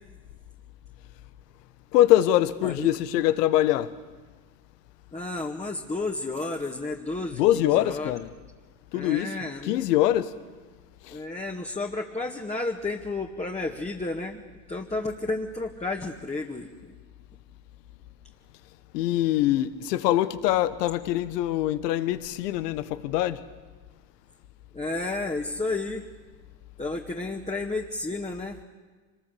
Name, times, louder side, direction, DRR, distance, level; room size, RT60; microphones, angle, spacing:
voice 1, 1.9-4.0 7.3-8.3 8.9-9.4 9.6-10.4 11.0-11.2 18.9-23.4, left 13 dB, 85° left, 1.2 m, -23 dB
voice 2, 5.1-8.1 8.9-9.8 11.1-14.4 14.7-16.9 24.7-26.0 26.8-28.6, left 2 dB, 15° left, 2.0 m, -32 dB
25.0 x 20.5 x 8.4 m
hypercardioid pair, 70°, 47 cm